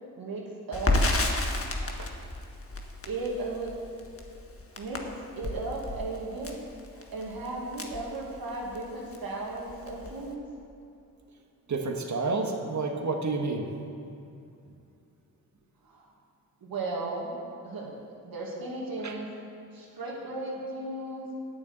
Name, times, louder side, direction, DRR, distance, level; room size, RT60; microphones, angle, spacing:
voice 1, 0.2-1.0 1.8-1.9 3.1-3.7 4.8-5.0 5.4-6.6 6.9-10.4 15.9-16.1 16.6-17.3 17.6-17.9 18.2-19.3 19.7-21.3, right 2 dB, 80° right, -2 dB, 2.3 m, -35 dB
Crackle, 0.7-8.8 9.1-9.3 9.6-10.3, left 2 dB, 40° left, 1.5 m, -31 dB
voice 2, 11.7-13.7 19.0-19.1, right 3 dB, 55° right, 2 dB, 1.6 m, -29 dB
9.5 x 7.1 x 8.2 m, 2.6 s
cardioid pair, 45°, 36 cm